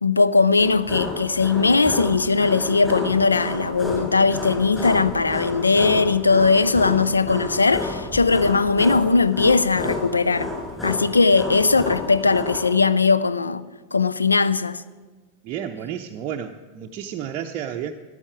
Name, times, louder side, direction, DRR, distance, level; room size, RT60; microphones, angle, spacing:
voice 1, 0.0-10.5 10.8-14.8, left 4 dB, 80° left, 0.4 m, -19 dB
sound 1, 0.6-12.7, left 2 dB, 10° left, 4.5 m, -31 dB
voice 2, 15.4-17.9, right 9 dB, 35° right, 0.6 m, -31 dB
14.0 x 11.5 x 4.8 m
figure-of-eight pair, 90°, 0 cm